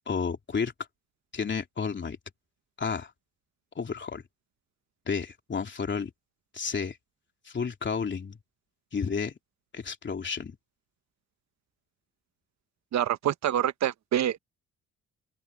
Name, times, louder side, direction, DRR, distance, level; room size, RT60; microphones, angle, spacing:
voice 1, 0.1-0.7 1.3-2.2 2.8-3.1 3.7-4.2 5.1-6.1 6.5-7.0 7.4-8.4 8.9-9.3 9.7-10.6, left 5 dB, 40° left, 3.3 m, -31 dB
voice 2, 12.9-14.4, right 11 dB, 65° right, 1.2 m, -26 dB
open air
cardioid pair, 90°, 30 cm